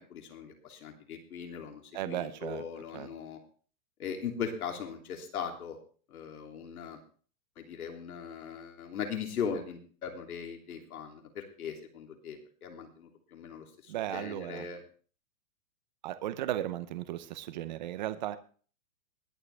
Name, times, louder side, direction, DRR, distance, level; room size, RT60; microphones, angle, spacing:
voice 1, 0.0-3.4 4.0-5.8 6.1-7.0 7.6-14.8, left 7 dB, 80° left, 3 dB, 3.1 m, -39 dB
voice 2, 1.9-2.6 2.9-3.1 13.9-14.7 16.0-18.4, right 13 dB, 35° right, 12 dB, 0.7 m, -35 dB
21.5 x 7.5 x 3.5 m, 0.42 s
hypercardioid pair, 175°, 43 cm